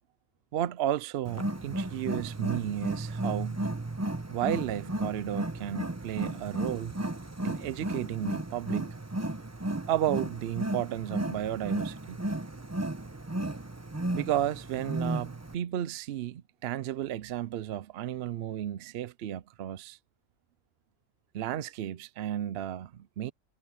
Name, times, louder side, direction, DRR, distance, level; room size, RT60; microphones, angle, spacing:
voice 1, 0.5-3.7 4.3-6.9 7.4-9.0 9.9-12.2 14.1-20.0 21.3-23.3, right 12 dB, 60° right, 0.7 m, -33 dB
Wild animals, 1.2-15.5, right 1 dB, 15° right, 0.8 m, -34 dB
omnidirectional pair, 1.4 m